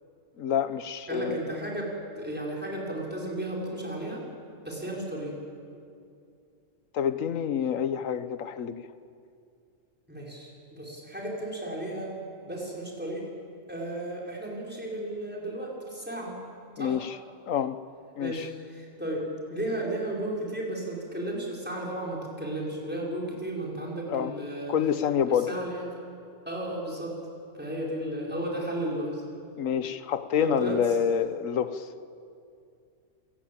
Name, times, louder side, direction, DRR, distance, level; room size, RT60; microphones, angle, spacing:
voice 1, 0.4-1.4 6.9-8.8 16.8-17.2 17.5-17.8 18.2-18.5 24.1-24.3 24.7-25.5 29.6-31.9, left 8 dB, 80° left, 12 dB, 1.3 m, -27 dB
voice 2, 1.1-4.3 4.6-5.4 10.1-12.1 12.4-13.2 13.7-16.4 16.8-17.0 18.2-24.8 25.3-26.0 26.5-27.2 27.5-29.2 30.4-30.8, right 1 dB, 5° right, -3 dB, 5.1 m, -34 dB
27.0 x 18.0 x 8.7 m, 2.4 s
omnidirectional pair, 1.4 m